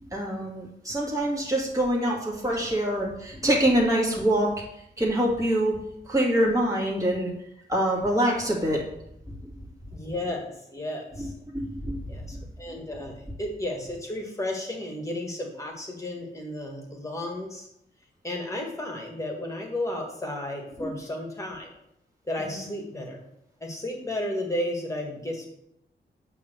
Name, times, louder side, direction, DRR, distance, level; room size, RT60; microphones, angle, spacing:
voice 1, 0.1-4.5 5.0-5.7 6.1-7.3 7.7-8.8 11.5-12.0 20.8-20.9, right 1 dB, 20° right, -3 dB, 2.2 m, -25 dB
voice 2, 9.9-11.3 12.1-17.7 18.2-21.7 22.3-23.2 23.6-25.5, left 1 dB, 15° left, 1 dB, 1.8 m, -33 dB
8.5 x 3.6 x 6.8 m, 0.78 s
wide cardioid pair, 140°, 19 cm